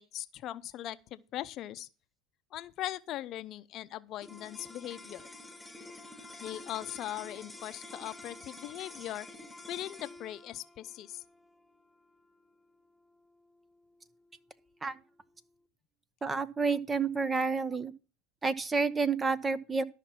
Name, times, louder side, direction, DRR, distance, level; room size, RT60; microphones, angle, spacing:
voice 1, 0.0-1.9 2.5-5.3 6.4-9.3 9.7-11.2, left 13 dB, 50° left, 0.7 m, -40 dB
sound 1, 4.2-14.6, left 2 dB, 5° left, 1.9 m, -49 dB
voice 2, 16.2-17.9 18.4-19.8, right 4 dB, 20° right, 0.9 m, -29 dB
13.0 x 5.9 x 5.8 m
hypercardioid pair, 95°, 0 cm